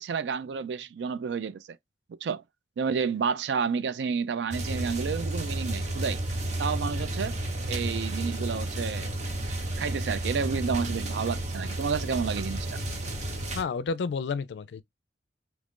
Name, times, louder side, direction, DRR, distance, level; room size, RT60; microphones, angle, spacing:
voice 1, 0.0-1.8 2.2-2.4 2.8-6.2 6.6-7.4 7.7-9.2 9.8-12.8, right 6 dB, 80° right, 0.4 m, -30 dB
sound 1, 4.5-13.6, right 1 dB, 40° right, 0.9 m, -32 dB
voice 2, 13.5-14.8, left 5 dB, 75° left, 0.4 m, -30 dB
3.0 x 2.5 x 3.5 m
head